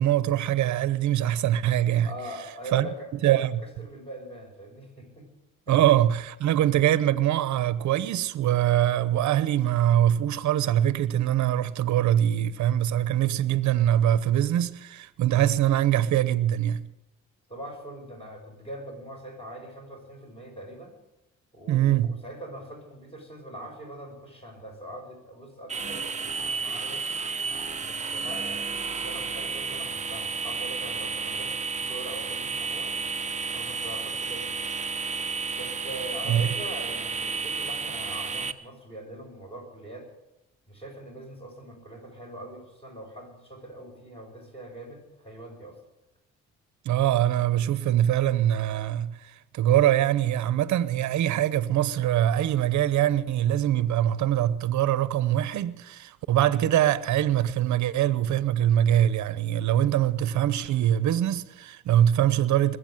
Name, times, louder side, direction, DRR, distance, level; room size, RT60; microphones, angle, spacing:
voice 1, 0.0-2.1 2.7-2.9 3.2-3.6 5.7-16.9 21.7-22.2 36.3-36.5 46.8-62.8, right 11 dB, 70° right, 0.8 m, -23 dB
voice 2, 2.0-3.4 3.8-5.2 5.7-5.8 17.5-20.9 21.5-27.0 27.8-33.0 33.5-34.6 35.5-40.1 40.7-45.8, right 1 dB, 20° left, 6.5 m, -42 dB
sound 1, 25.7-38.5, right 5 dB, 25° right, 0.8 m, -32 dB
21.0 x 8.1 x 7.8 m
cardioid pair, 90°, 30 cm